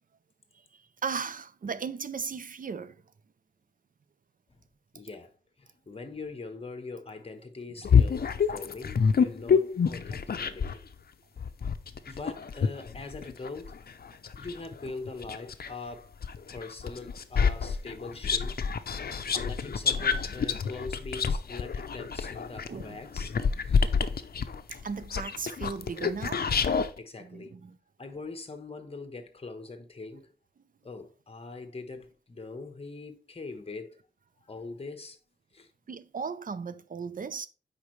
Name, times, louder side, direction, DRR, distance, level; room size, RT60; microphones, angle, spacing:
voice 1, 0.5-3.0 22.7-23.0 24.7-26.5 27.2-27.8 35.9-37.5, right 5 dB, 50° right, 0.5 m, -37 dB
voice 2, 4.9-10.8 12.0-13.8 14.3-16.2 16.5-18.6 19.3-23.3 23.6-23.9 27.0-27.6 28.0-30.3 30.8-34.0 34.4-35.2 35.5-35.7, left 3 dB, 35° left, 1.2 m, -42 dB
sound 1, 7.8-10.8 11.4-15.7 16.2-26.9, left 6 dB, 60° left, 0.6 m, -27 dB
8.3 x 5.2 x 3.2 m
wide cardioid pair, 110°, 18 cm